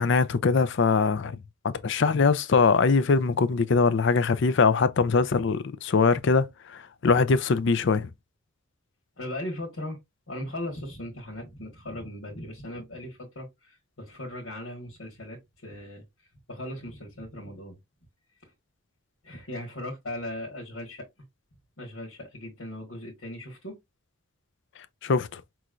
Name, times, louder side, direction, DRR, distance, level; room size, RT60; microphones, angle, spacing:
voice 1, 0.0-1.4 1.6-8.1 25.0-25.4, left 4 dB, 55° left, 0.4 m, -22 dB
voice 2, 9.2-10.0 10.3-16.0 16.5-17.7 18.4-18.5 19.2-21.0 21.8-23.7, left 1 dB, 80° left, 1.5 m, -38 dB
5.7 x 3.1 x 2.5 m
head